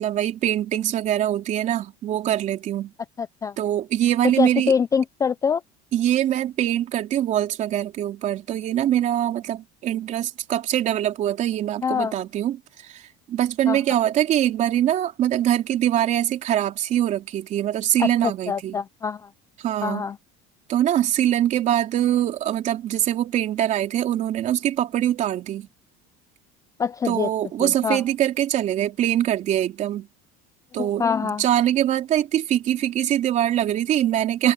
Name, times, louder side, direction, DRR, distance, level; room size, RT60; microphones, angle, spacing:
voice 1, 0.0-2.9 3.6-4.7 5.9-18.8 19.6-20.1 20.7-25.7 27.1-30.1 30.7-34.5, right 11 dB, 40° right, 3.4 m, -23 dB
voice 2, 3.2-3.6 4.4-5.6 11.8-12.1 13.7-13.8 18.0-18.1 18.5-19.3 19.8-20.2 26.8-27.3 27.6-28.0 30.8-31.4, left 6 dB, 15° left, 0.4 m, -24 dB
cardioid pair, 165°, 19 cm